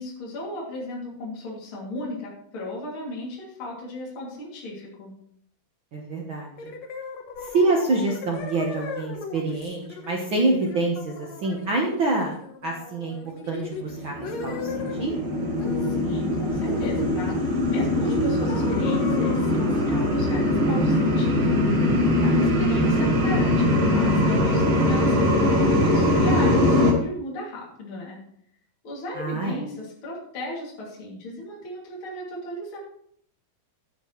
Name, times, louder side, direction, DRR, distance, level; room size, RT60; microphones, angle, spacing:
voice 1, 0.0-5.1 15.9-21.7 22.0-28.2 28.8-32.8, left 1 dB, 35° left, -4 dB, 3.1 m, -36 dB
voice 2, 5.9-6.5 7.4-12.3 12.6-13.2 13.5-15.1 15.4-15.5 22.2-22.5 29.1-29.6, right 2 dB, 80° right, -1 dB, 1.1 m, -26 dB
sound 1, 6.6-15.1 15.6-16.0 16.3-17.6 18.0-21.8, left 4 dB, 60° left, 1.9 m, -38 dB
sound 2, 13.8-26.9, left 1 dB, 50° right, 1.8 m, -22 dB
15.5 x 7.7 x 3.2 m, 0.67 s
omnidirectional pair, 4.4 m